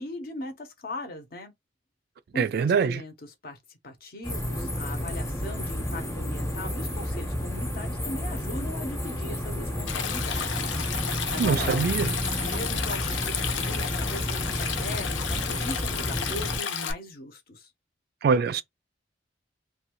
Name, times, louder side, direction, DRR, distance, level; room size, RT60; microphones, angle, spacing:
voice 1, 0.0-1.5 2.3-10.9 11.3-11.9 12.4-17.7, left 1 dB, 55° left, 0.8 m, -39 dB
voice 2, 2.4-3.0 11.4-12.1 18.2-18.6, right 5 dB, 55° right, 0.3 m, -23 dB
sound 1, 4.2-16.6, equal, 15° left, 0.7 m, -31 dB
Stream, 9.9-16.9, left 8 dB, 80° left, 0.5 m, -32 dB
2.6 x 2.3 x 2.9 m
head